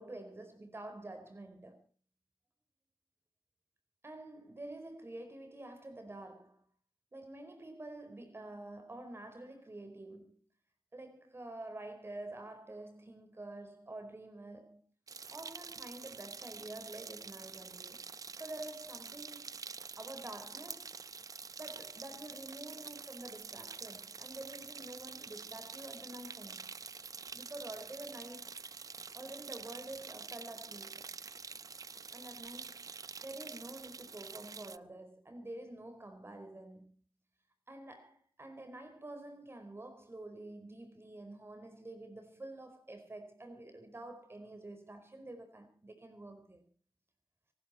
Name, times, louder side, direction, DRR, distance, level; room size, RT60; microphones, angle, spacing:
voice 1, 0.0-1.8 4.0-6.6 7.1-10.4 10.9-14.8 15.3-19.6 20.0-21.0 21.6-26.7 27.3-28.6 29.1-31.1 32.1-32.9 33.2-36.9 37.7-46.6, right 2 dB, 30° right, 4.5 m, -48 dB
sound 1, 15.1-34.8, right 5 dB, 45° right, 0.7 m, -47 dB
24.0 x 12.5 x 4.3 m
supercardioid pair, 55°, 8 cm